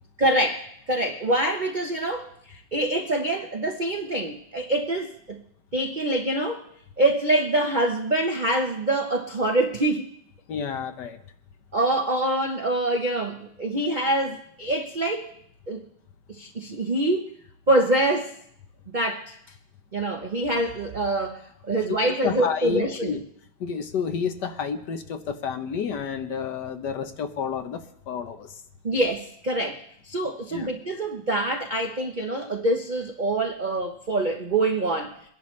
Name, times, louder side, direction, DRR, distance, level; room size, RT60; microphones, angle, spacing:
voice 1, 0.2-5.4 5.7-6.6 7.0-10.1 11.7-15.3 15.7-15.8 16.3-17.3 17.7-18.4 18.9-19.4 19.9-23.2 28.8-35.2, right 1 dB, 80° right, 0.4 m, -25 dB
voice 2, 10.5-11.2 21.9-22.0 22.2-23.2 23.6-28.6 30.5-30.7, left 6 dB, 60° left, 1.3 m, -30 dB
22.5 x 11.0 x 3.2 m
omnidirectional pair, 2.3 m